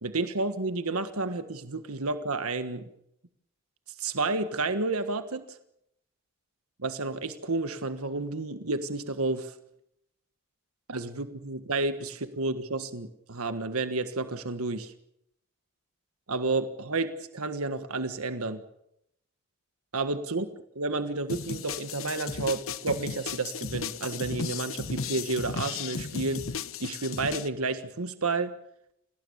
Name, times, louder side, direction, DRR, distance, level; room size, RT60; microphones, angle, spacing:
voice 1, 0.0-2.9 4.0-5.6 6.8-9.5 10.9-14.9 16.3-18.6 19.9-20.5 20.7-26.5 26.8-28.5, right 3 dB, 80° right, 10 dB, 1.5 m, -31 dB
sound 1, 21.3-27.5, left 5 dB, 65° left, 1.0 m, -35 dB
27.5 x 19.0 x 7.1 m, 0.79 s
head